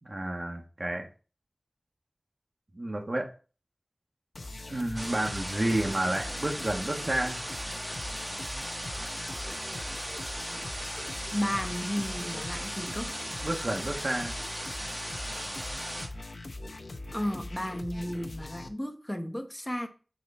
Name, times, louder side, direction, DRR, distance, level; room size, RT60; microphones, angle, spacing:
voice 1, 0.0-1.1 2.7-3.3 4.7-7.5 13.4-14.3, right 1 dB, 50° right, 1.2 m, -30 dB
sound 1, 4.3-18.7, left 2 dB, 80° left, 0.6 m, -42 dB
sound 2, 5.0-16.1, equal, 20° right, 1.4 m, -37 dB
voice 2, 11.3-13.1 17.1-19.9, equal, 15° left, 1.1 m, -33 dB
7.5 x 4.0 x 4.2 m
wide cardioid pair, 55°, 0 cm